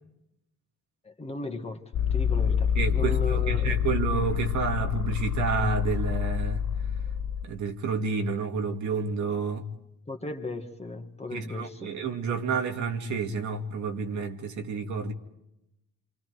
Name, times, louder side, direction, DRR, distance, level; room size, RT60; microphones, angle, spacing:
voice 1, 1.0-3.8 10.1-12.0, left 3 dB, 20° left, 2.2 m, -36 dB
sound 1, 1.9-7.4, left 8 dB, 60° left, 0.9 m, -27 dB
voice 2, 2.8-6.6 7.4-9.6 11.3-15.1, right 5 dB, 70° right, 2.3 m, -30 dB
28.0 x 25.0 x 4.8 m
cardioid pair, 90°, 30 cm